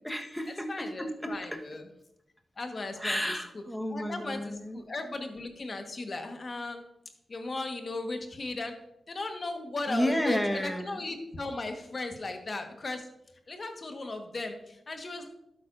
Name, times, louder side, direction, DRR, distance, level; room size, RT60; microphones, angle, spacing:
voice 1, 0.0-1.6 3.0-4.8 9.9-11.0, equal, 5° left, 4 dB, 1.3 m, -32 dB
voice 2, 0.7-1.8 2.6-3.3 3.9-6.8 7.3-8.7 9.1-13.1 13.5-15.3, left 2 dB, 50° left, 5 dB, 1.4 m, -36 dB
11.5 x 8.7 x 2.6 m, 0.82 s
cardioid pair, 60°, 0 cm